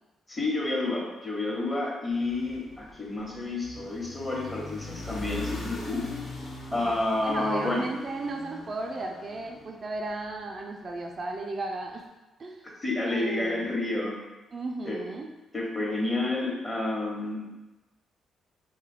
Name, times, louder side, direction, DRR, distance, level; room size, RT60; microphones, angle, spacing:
voice 1, 0.3-6.0 6.7-7.9 12.8-14.2 14.8-15.0 15.5-17.4, left 2 dB, 25° left, -2 dB, 1.0 m, -29 dB
sound 1, 2.1-10.5, left 2 dB, 50° left, 0.6 m, -41 dB
voice 2, 7.2-12.0 12.4-12.6 13.0-13.7 14.5-15.3, right 2 dB, 45° right, 1 dB, 0.3 m, -35 dB
2.6 x 2.3 x 3.4 m, 1.1 s
hypercardioid pair, 50°, 0 cm